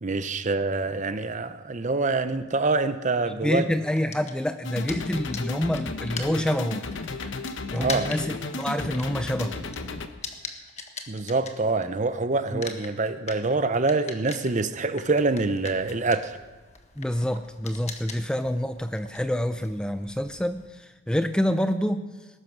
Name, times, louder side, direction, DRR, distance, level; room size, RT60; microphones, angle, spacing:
voice 1, 0.0-3.7 7.7-8.1 11.1-16.4, right 3 dB, 35° right, 11 dB, 0.7 m, -25 dB
voice 2, 3.4-6.8 7.7-9.6 12.5-12.6 17.0-22.0, equal, 5° left, 9 dB, 0.4 m, -27 dB
sound 1, 4.0-12.1 12.4-20.7, left 5 dB, 30° left, 1.3 m, -41 dB
sound 2, 4.6-10.1, left 3 dB, 60° left, 1.0 m, -34 dB
20.0 x 11.0 x 6.1 m, 1.3 s
head